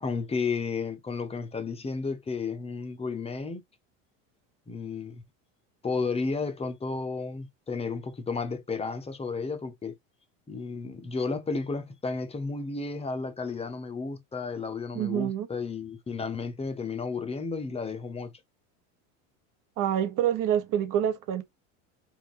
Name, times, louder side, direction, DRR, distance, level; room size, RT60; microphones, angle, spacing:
voice 1, 0.0-3.6 4.7-5.2 5.8-9.9 10.5-18.3, left 4 dB, 15° left, 0.8 m, -32 dB
voice 2, 14.9-15.5 19.8-21.4, right 10 dB, 55° right, 1.1 m, -26 dB
3.4 x 2.6 x 3.2 m
supercardioid pair, 105°, 39 cm